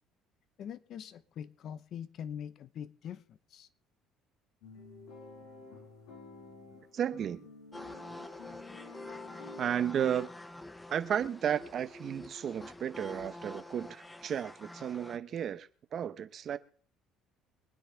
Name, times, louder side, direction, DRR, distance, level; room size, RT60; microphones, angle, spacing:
voice 1, 0.6-3.7, left 8 dB, 55° left, 1.0 m, -43 dB
sound 1, 4.6-9.7, left 4 dB, 85° left, 5.1 m, -51 dB
voice 2, 6.9-7.4 9.6-10.3 10.9-16.6, right 9 dB, 45° right, 0.9 m, -33 dB
sound 2, 7.7-15.2, left 1 dB, 10° left, 0.8 m, -47 dB
24.5 x 9.7 x 3.4 m
cardioid pair, 115°, 0 cm